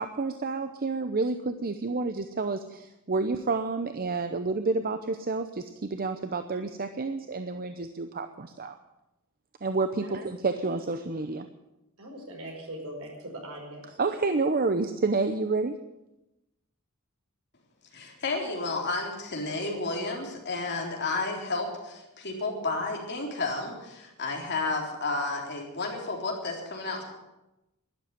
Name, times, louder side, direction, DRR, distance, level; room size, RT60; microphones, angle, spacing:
voice 1, 0.0-8.7 9.6-11.5 14.0-15.8, right 3 dB, 45° right, 8 dB, 0.8 m, -29 dB
voice 2, 12.0-14.0, right 1 dB, 70° right, 0 dB, 5.3 m, -41 dB
voice 3, 17.9-27.0, left 3 dB, 50° left, 0 dB, 3.8 m, -32 dB
12.5 x 11.5 x 9.2 m, 0.95 s
head